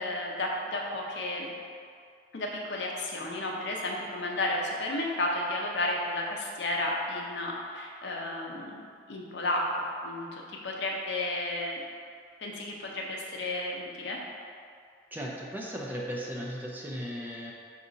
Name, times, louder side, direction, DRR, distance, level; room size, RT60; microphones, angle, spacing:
voice 1, 0.0-1.5 2.3-8.8 9.1-11.8 12.4-14.2, left 1 dB, 70° left, -1 dB, 0.6 m, -32 dB
voice 2, 15.1-17.5, equal, 10° right, -3 dB, 0.4 m, -36 dB
5.4 x 2.5 x 3.9 m, 2.2 s
head